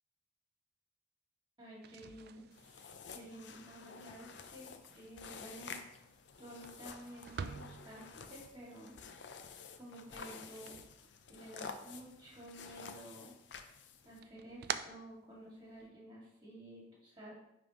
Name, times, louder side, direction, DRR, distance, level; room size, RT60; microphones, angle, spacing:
voice 1, 1.6-2.5 3.1-5.8 6.4-8.9 9.8-10.7 11.3-13.3 14.0-17.3, right 1 dB, 25° right, -5 dB, 2.1 m, -52 dB
sound 1, 1.7-11.7 12.0-12.9 13.3-15.9, right 7 dB, 55° right, 0.3 m, -49 dB
sound 2, 2.5-14.2, left 5 dB, 65° left, 0.5 m, -51 dB
9.8 x 3.6 x 3.0 m, 0.83 s
head